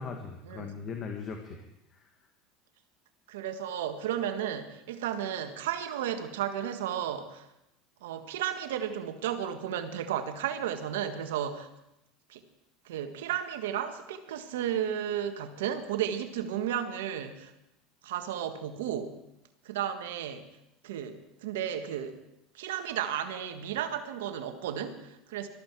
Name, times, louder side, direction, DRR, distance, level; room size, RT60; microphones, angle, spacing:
voice 1, 0.0-2.1, left 5 dB, 35° left, 4 dB, 1.8 m, -40 dB
voice 2, 3.3-7.4 8.0-11.7 12.3-12.4 12.8-17.5 18.0-19.1 19.6-20.4 20.8-22.1 22.5-25.5, right 9 dB, 85° right, 7 dB, 1.6 m, -33 dB
20.0 x 13.5 x 4.7 m, 0.88 s
supercardioid pair, 110°, 0 cm